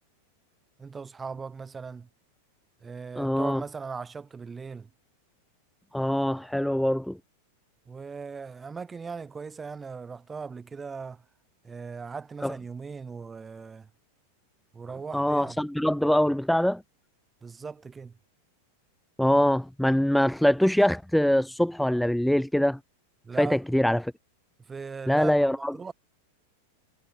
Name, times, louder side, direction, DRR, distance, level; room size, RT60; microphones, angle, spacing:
voice 1, 0.8-2.1 2.8-4.9 7.9-11.2 11.6-13.9 14.7-15.6 17.4-18.2 23.2-23.6 24.6-25.9, right 5 dB, 15° right, 2.8 m, -39 dB
voice 2, 3.2-3.6 5.9-7.2 12.4-12.5 15.1-16.8 19.2-22.8 23.4-24.1 25.1-25.7, equal, ahead, 0.4 m, -23 dB
hypercardioid pair, 105°, 0 cm